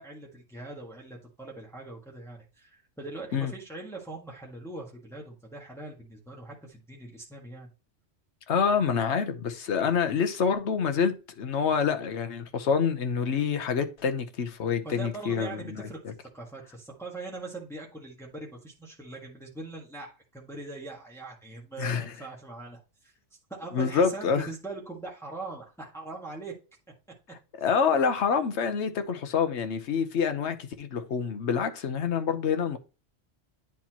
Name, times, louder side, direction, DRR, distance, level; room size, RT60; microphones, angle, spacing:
voice 1, 0.0-7.7 14.8-16.0 16.3-23.1 23.5-26.5, right 3 dB, ahead, 1.6 m, -41 dB
voice 2, 8.5-15.6 21.8-22.1 23.7-24.5 27.6-32.8, left 6 dB, 65° left, 1.2 m, -27 dB
9.9 x 4.2 x 2.9 m
omnidirectional pair, 1.3 m